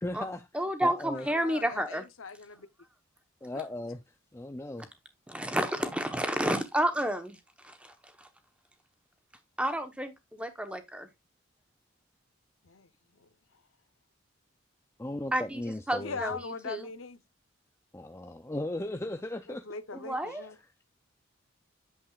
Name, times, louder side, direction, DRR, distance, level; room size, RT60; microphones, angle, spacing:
voice 1, 0.0-0.5 0.8-1.3 3.4-4.0 4.3-4.9 15.0-16.2 17.9-19.7 20.3-20.7, left 1 dB, 15° left, 0.4 m, -37 dB
voice 2, 0.5-2.0 5.3-7.4 7.6-8.3 9.6-11.1 15.3-15.6 15.9-16.4 16.6-16.9 19.9-20.5, right 1 dB, 5° right, 1.0 m, -30 dB
voice 3, 1.1-2.7 3.5-3.7 12.6-12.9 13.2-13.3 16.0-17.2 19.7-20.6, left 5 dB, 70° left, 0.8 m, -40 dB
8.6 x 7.3 x 2.4 m
head